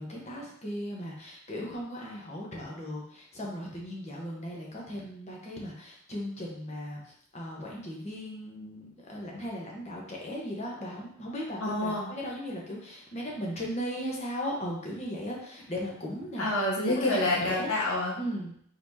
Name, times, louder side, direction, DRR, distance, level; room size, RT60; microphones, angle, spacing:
voice 1, 0.0-7.0 7.3-16.5 16.9-17.7 18.2-18.5, equal, 30° left, -2 dB, 1.0 m, -37 dB
voice 2, 11.6-12.1 16.4-18.1, left 1 dB, 85° left, -3 dB, 1.4 m, -28 dB
4.6 x 4.2 x 2.8 m, 0.66 s
head